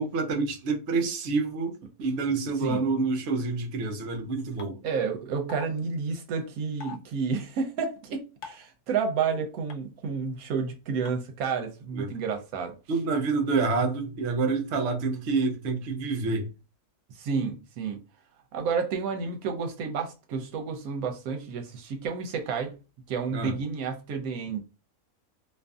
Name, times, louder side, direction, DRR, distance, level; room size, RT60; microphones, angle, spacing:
voice 1, 0.0-1.8 2.0-4.8 11.9-12.1 12.9-16.5 23.3-23.6, right 4 dB, 60° right, 0.8 m, -27 dB
sound 1, 4.6-4.7 5.5-5.7 6.8-7.0 8.4-8.7 9.7-9.8 11.1-11.2, left 6 dB, 70° left, 0.8 m, -40 dB
voice 2, 4.8-12.7 17.2-18.0 18.5-22.8 23.1-24.6, right 5 dB, 80° right, 1.1 m, -30 dB
2.6 x 2.5 x 2.3 m
omnidirectional pair, 1.5 m